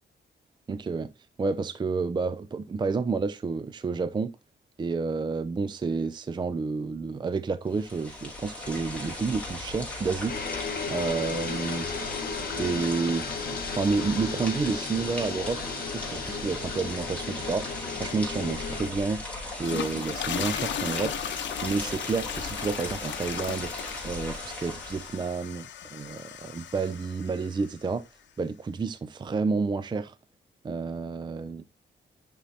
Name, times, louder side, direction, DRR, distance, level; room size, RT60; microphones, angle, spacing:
voice 1, 0.7-1.1 1.4-4.3 4.8-10.4 10.9-11.9 12.6-13.4 13.7-15.6 15.9-17.7 18.0-19.2 19.6-21.1 21.6-23.7 24.0-28.0 28.4-30.2 30.6-31.7, right 4 dB, 25° right, 0.4 m, -30 dB
sound 1, 7.7-25.3, left 2 dB, 5° left, 3.3 m, -38 dB
sound 2, 10.3-18.9, left 5 dB, 55° left, 1.4 m, -35 dB
sound 3, 19.4-27.8, left 9 dB, 80° left, 0.9 m, -36 dB
9.9 x 6.2 x 2.8 m
wide cardioid pair, 155°, 19 cm